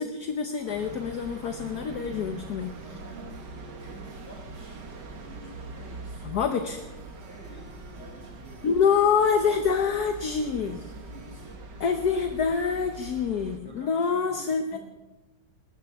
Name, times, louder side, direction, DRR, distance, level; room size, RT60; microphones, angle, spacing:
voice 1, 0.0-2.7 6.2-6.8 8.6-10.8 11.8-14.8, left 6 dB, 60° left, 6 dB, 1.4 m, -26 dB
sound 1, 0.5-11.6, right 2 dB, 90° right, 3.3 m, -53 dB
sound 2, 0.7-13.6, right 3 dB, 60° right, 2.0 m, -43 dB
voice 2, 2.9-3.4 3.8-4.9 5.2-6.8 7.2-8.7 9.0-11.6 13.6-14.8, equal, 10° left, -2 dB, 6.4 m, -50 dB
21.0 x 19.5 x 3.5 m, 1.1 s
omnidirectional pair, 2.1 m